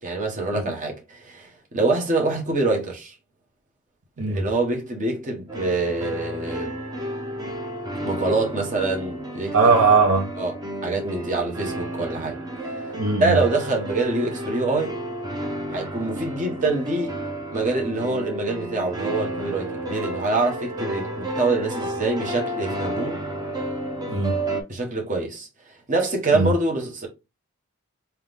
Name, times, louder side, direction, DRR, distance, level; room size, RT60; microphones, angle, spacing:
voice 1, 0.0-3.2 4.2-6.8 8.0-9.6 10.4-10.5 10.8-12.4 12.6-12.7 13.2-15.0 15.7-17.2 17.5-23.2 24.7-27.1, right 3 dB, 35° right, 1.1 m, -25 dB
sound 1, 5.5-24.6, right 1 dB, 20° right, 0.7 m, -31 dB
voice 2, 9.5-10.3 13.0-13.4 24.1-24.4 26.3-26.5, right 4 dB, 80° right, 1.0 m, -19 dB
3.6 x 2.9 x 3.5 m
head